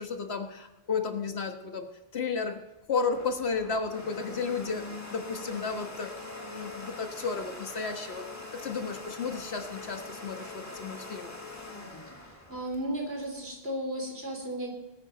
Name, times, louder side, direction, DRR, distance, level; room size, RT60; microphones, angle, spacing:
voice 1, 0.0-1.9 2.1-2.6 2.9-6.1 6.5-8.3 8.5-11.4, left 5 dB, 85° left, 6 dB, 1.6 m, -33 dB
Domestic sounds home sounds, 2.8-13.5, left 2 dB, 15° left, 1.7 m, -43 dB
voice 2, 12.5-14.7, right 1 dB, 75° right, 0 dB, 3.9 m, -34 dB
20.0 x 9.4 x 4.0 m, 1.1 s
omnidirectional pair, 1.0 m